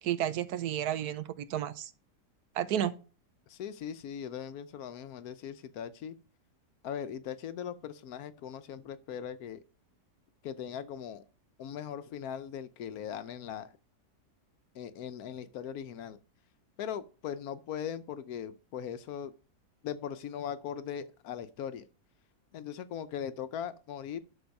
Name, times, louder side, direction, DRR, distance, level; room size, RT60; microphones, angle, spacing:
voice 1, 0.0-1.9 2.5-2.9, right 11 dB, 75° right, 1.2 m, -32 dB
voice 2, 3.5-6.2 6.8-9.6 10.4-11.2 11.6-13.7 14.7-16.2 16.8-19.3 19.8-21.9 22.5-24.2, left 8 dB, 70° left, 1.1 m, -39 dB
11.5 x 4.3 x 5.3 m
omnidirectional pair, 1.7 m